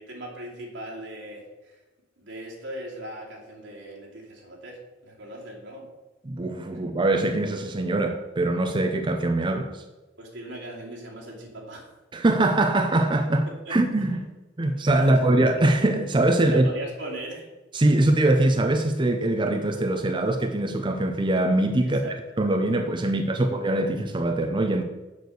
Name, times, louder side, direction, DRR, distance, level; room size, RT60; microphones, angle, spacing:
voice 1, 0.0-1.7 2.2-5.9 10.2-11.9 13.5-13.8 14.1-14.2 14.6-15.3 16.5-17.5 21.8-22.2 23.0-23.4, right 1 dB, 85° right, 2.6 m, -39 dB
voice 2, 6.3-9.8 12.1-14.2 14.6-16.7 17.7-24.8, right 2 dB, 25° right, 0.5 m, -23 dB
6.7 x 6.5 x 6.6 m
head